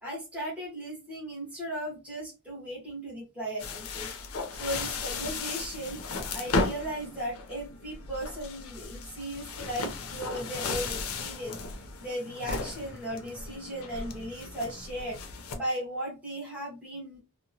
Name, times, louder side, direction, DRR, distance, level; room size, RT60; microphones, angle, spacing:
voice 1, 0.0-4.1 4.5-6.0 6.3-11.6 12.0-15.2 15.5-17.2, right 1 dB, 5° right, -6 dB, 1.0 m, -36 dB
sound 1, 3.6-15.6, left 3 dB, 65° left, 0.5 m, -35 dB
2.8 x 2.1 x 2.6 m, 0.28 s
head